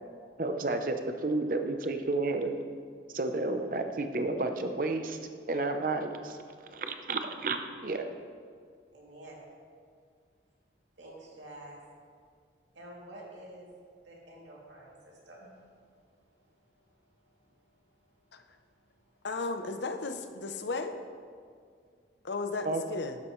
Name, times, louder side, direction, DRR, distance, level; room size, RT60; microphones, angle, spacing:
voice 1, 0.4-2.5 3.1-6.4 6.6-8.1 22.6-22.8, right 2 dB, 50° right, 7 dB, 0.7 m, -31 dB
voice 2, 8.9-9.4 11.0-11.8 12.7-13.7 14.0-15.8, right 1 dB, 90° right, -4 dB, 2.7 m, -49 dB
voice 3, 19.2-20.9 22.2-23.2, left 3 dB, 75° left, 7 dB, 0.7 m, -34 dB
12.5 x 9.6 x 3.2 m, 2.1 s
head